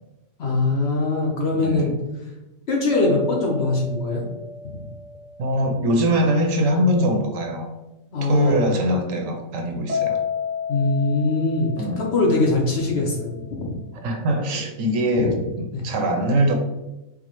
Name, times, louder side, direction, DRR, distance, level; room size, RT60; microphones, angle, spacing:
voice 1, 0.4-1.9 2.7-4.2 8.1-8.7 10.7-11.7 12.0-13.8 15.2-15.4 15.7-15.9, left 3 dB, 55° left, -1 dB, 0.9 m, -22 dB
voice 2, 1.5-2.0 5.4-7.7 8.3-10.2 11.8-12.0 14.0-16.5, right 1 dB, 70° right, 4 dB, 0.9 m, -22 dB
sound 1, 2.9-6.5 9.9-12.9, left 6 dB, 45° right, 0.5 m, -32 dB
4.7 x 2.1 x 2.9 m, 1.0 s
omnidirectional pair, 1.5 m